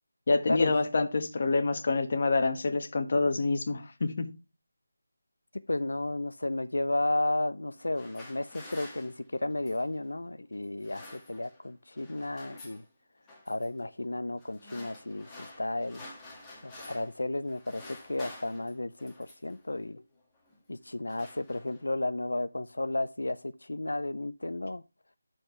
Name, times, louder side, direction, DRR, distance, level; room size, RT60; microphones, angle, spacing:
voice 1, 0.3-4.3, left 3 dB, 45° left, 1.3 m, -27 dB
voice 2, 5.7-12.8 13.5-16.0 16.6-20.0 20.7-24.8, left 2 dB, 90° left, 0.6 m, -33 dB
sound 1, 7.7-9.9 10.6-11.7 11.9-12.8 13.3-13.7 14.4-17.2 17.5-19.6 20.3-20.6 20.9-22.0, left 2 dB, 10° left, 1.7 m, -49 dB
12.0 x 4.4 x 3.1 m
figure-of-eight pair, 170°, 0 cm